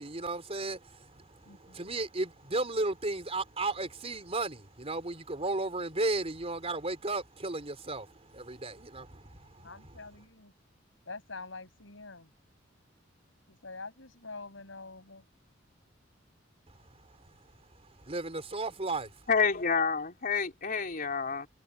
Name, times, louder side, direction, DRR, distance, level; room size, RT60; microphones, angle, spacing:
voice 1, 0.0-9.7 16.7-17.3 17.8-19.1, right 2 dB, 35° right, 4.1 m, -35 dB
voice 2, 1.5-1.8 9.6-10.5 11.1-12.3 13.5-15.2, left 3 dB, 80° left, 7.2 m, -46 dB
voice 3, 19.3-21.5, left 5 dB, 50° left, 3.7 m, -28 dB
head